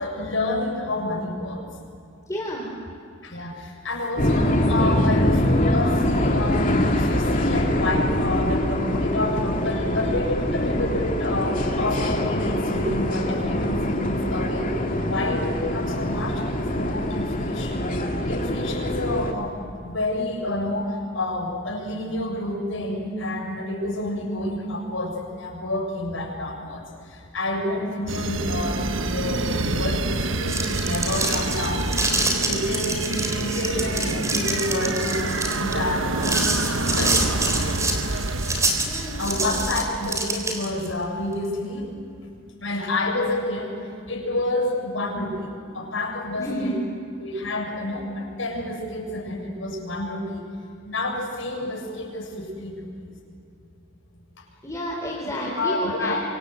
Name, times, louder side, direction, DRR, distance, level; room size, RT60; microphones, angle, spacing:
voice 1, 0.0-1.6 3.2-14.7 15.0-17.9 18.3-19.6 19.8-26.8 27.3-31.9 32.4-36.4 37.0-37.2 37.8-37.9 39.2-41.9 42.6-43.7 44.1-46.8 47.2-50.4 50.8-52.8 55.3-56.2, left 2 dB, 75° left, 0 dB, 7.2 m, -29 dB
voice 2, 2.3-2.7 38.8-39.6 46.4-46.8 54.6-56.2, equal, 15° left, -2 dB, 3.9 m, -30 dB
sound 1, 4.2-19.3, left 1 dB, 45° left, 2.9 m, -24 dB
sound 2, 28.1-40.4, right 2 dB, 80° right, 1.4 m, -27 dB
sound 3, 30.3-40.9, right 2 dB, 15° right, 3.8 m, -27 dB
26.5 x 25.5 x 8.0 m, 2.5 s
head